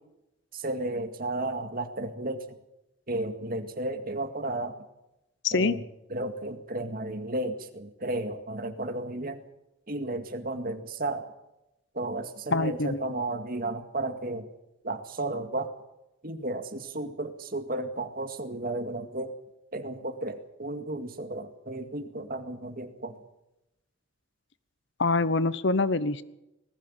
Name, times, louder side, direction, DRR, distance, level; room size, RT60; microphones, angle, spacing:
voice 1, 0.5-2.6 3.1-4.8 5.5-5.8 6.1-9.4 9.9-11.3 11.9-14.5 14.8-15.7 16.2-19.3 19.7-23.2, right 2 dB, 45° right, 8 dB, 2.1 m, -33 dB
voice 2, 5.4-5.8 12.5-13.0 25.0-26.2, left 3 dB, 60° left, 16 dB, 0.9 m, -25 dB
20.0 x 15.0 x 8.9 m, 0.90 s
head